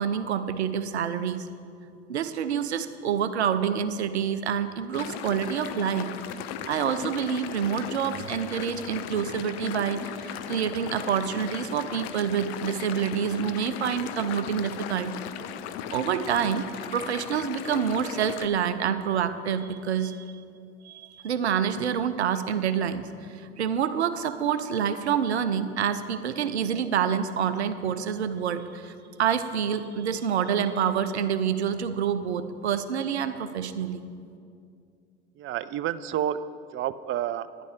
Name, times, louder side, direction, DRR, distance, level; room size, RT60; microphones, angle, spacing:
voice 1, 0.0-1.5 2.1-6.1 6.7-15.1 15.9-16.6 16.9-20.3 20.8-28.9 29.2-34.1, right 8 dB, 90° right, 11 dB, 0.6 m, -27 dB
sound 1, 4.9-18.5, left 9 dB, 70° left, 0.7 m, -37 dB
voice 2, 35.4-37.6, right 10 dB, 40° right, 15 dB, 0.5 m, -30 dB
11.0 x 11.0 x 4.9 m, 2.4 s
hypercardioid pair, 70°, 32 cm